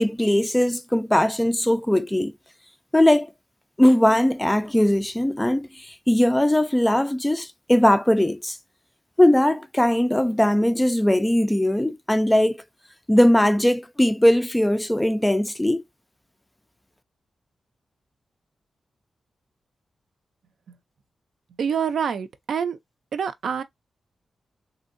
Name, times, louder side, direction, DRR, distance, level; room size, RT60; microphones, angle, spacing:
voice 1, 0.0-2.3 2.9-3.3 3.8-8.6 9.2-12.6 13.1-15.8, left 1 dB, 10° left, 0.3 m, -20 dB
voice 2, 21.6-22.8 23.1-23.6, right 7 dB, 80° right, 0.5 m, -26 dB
3.4 x 2.7 x 2.5 m
wide cardioid pair, 125°, 0 cm